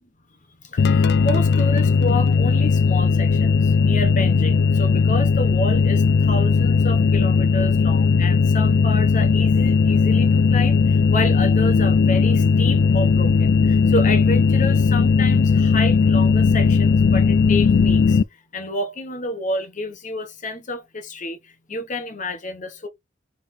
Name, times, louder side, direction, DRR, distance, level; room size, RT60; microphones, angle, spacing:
voice 1, 0.5-18.2 18.5-22.9, left 1 dB, 40° left, 1.1 m, -30 dB
sound 1, 0.8-18.2, left 5 dB, 60° left, 0.3 m, -17 dB
3.7 x 3.3 x 4.2 m
head